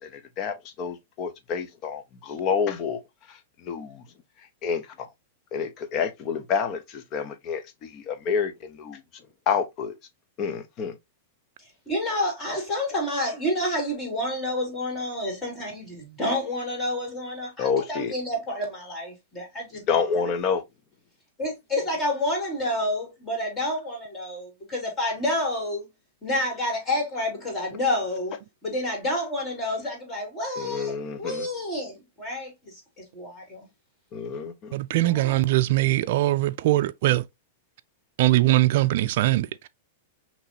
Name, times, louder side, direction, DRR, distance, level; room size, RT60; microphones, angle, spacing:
voice 1, 0.4-3.0 3.7-4.0 4.6-4.8 5.5-6.8 7.1-7.6 7.9-8.5 8.8-9.0 9.5-9.9 10.4-10.9 17.6-18.1 19.9-20.6 30.6-31.5 34.1-34.7, left 6 dB, 40° left, 0.8 m, -28 dB
voice 2, 11.9-20.1 21.4-25.9 26.2-33.7 34.9-35.4, left 1 dB, 20° left, 3.0 m, -29 dB
voice 3, 34.7-37.2 38.2-39.7, right 16 dB, 60° right, 0.3 m, -21 dB
5.7 x 3.0 x 2.8 m
hypercardioid pair, 130°, 0 cm